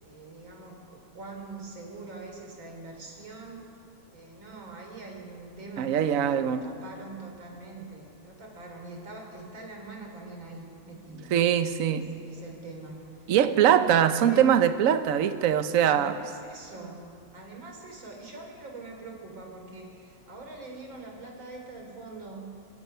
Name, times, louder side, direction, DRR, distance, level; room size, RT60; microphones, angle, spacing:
voice 1, 0.0-3.7 4.1-11.4 11.9-14.5 15.8-17.1 17.3-22.6, right 3 dB, 80° right, 2 dB, 4.2 m, -43 dB
voice 2, 5.8-6.6 11.3-12.1 13.3-16.2, right 9 dB, 55° right, 10 dB, 1.1 m, -22 dB
30.0 x 17.0 x 5.7 m, 2.6 s
omnidirectional pair, 2.1 m